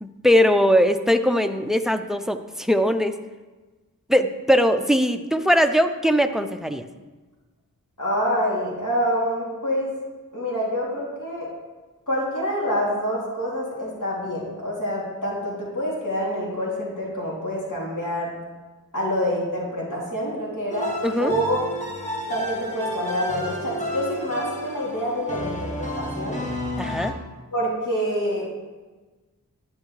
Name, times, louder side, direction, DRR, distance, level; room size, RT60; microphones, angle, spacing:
voice 1, 0.0-3.1 4.1-6.8 21.0-21.3 26.8-27.1, equal, ahead, 8 dB, 0.6 m, -20 dB
voice 2, 8.0-9.9 10.3-11.5 12.1-18.3 18.9-20.9 21.2-21.6 22.3-26.4 27.5-28.5, equal, 60° left, -6 dB, 2.9 m, -26 dB
sound 1, 20.7-27.1, equal, 20° left, 2.1 m, -31 dB
11.0 x 9.5 x 3.3 m, 1.3 s
wide cardioid pair, 40°, 35 cm